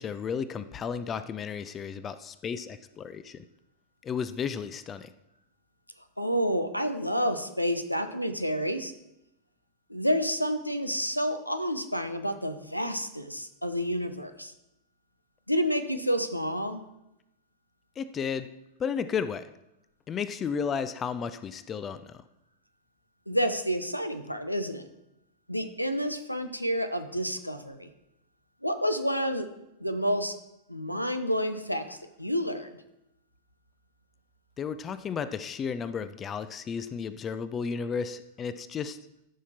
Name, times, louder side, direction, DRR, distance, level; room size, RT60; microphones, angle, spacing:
voice 1, 0.0-3.4 4.0-5.1 18.0-18.5 18.8-19.5 20.1-22.2 34.6-39.0, left 6 dB, 25° left, 13 dB, 0.5 m, -33 dB
voice 2, 6.2-8.9 9.9-14.5 15.5-16.8 23.3-24.8 25.5-27.9 28.6-29.5 29.8-30.4 30.7-32.7, equal, 90° left, 9 dB, 0.8 m, -29 dB
14.0 x 5.8 x 4.3 m, 0.86 s
figure-of-eight pair, 90°, 0 cm